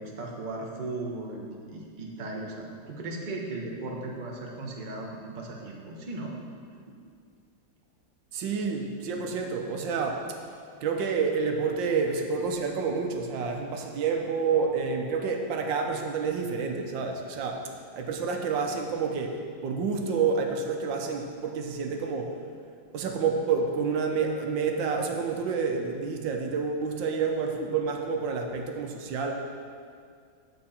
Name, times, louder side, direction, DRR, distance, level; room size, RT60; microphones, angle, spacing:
voice 1, 0.0-6.3 6.9-7.0, right 2 dB, 30° right, -1 dB, 0.9 m, -37 dB
voice 2, 8.3-10.3 10.8-22.4 22.9-29.3, right 5 dB, 75° right, 3 dB, 1.4 m, -29 dB
9.3 x 7.4 x 4.2 m, 2.2 s
omnidirectional pair, 2.1 m